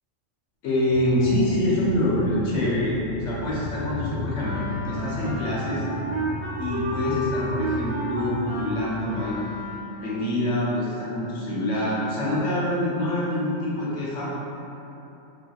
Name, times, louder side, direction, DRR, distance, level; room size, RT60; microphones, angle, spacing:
voice 1, 0.6-5.8 6.6-9.4 10.0-14.3, left 1 dB, 80° left, -7 dB, 1.1 m, -25 dB
sound 1, 0.9-9.2, left 2 dB, 25° left, 0.9 m, -35 dB
Wind instrument woodwind instrument, 4.4-10.0, right 1 dB, 75° right, 0.9 m, -31 dB
3.4 x 2.2 x 2.3 m, 3.0 s
omnidirectional pair, 1.2 m